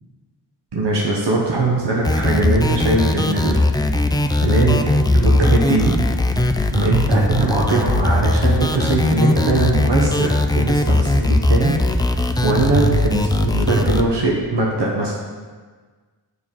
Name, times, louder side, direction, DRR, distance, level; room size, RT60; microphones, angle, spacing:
voice 1, 0.7-3.6 4.4-4.8 5.1-5.9 6.7-11.8 12.0-15.1, right 2 dB, 85° right, -2 dB, 1.0 m, -20 dB
sound 1, 2.0-14.0, left 1 dB, 10° left, 0.3 m, -19 dB
7.2 x 6.2 x 3.7 m, 1.5 s
wide cardioid pair, 75°, 41 cm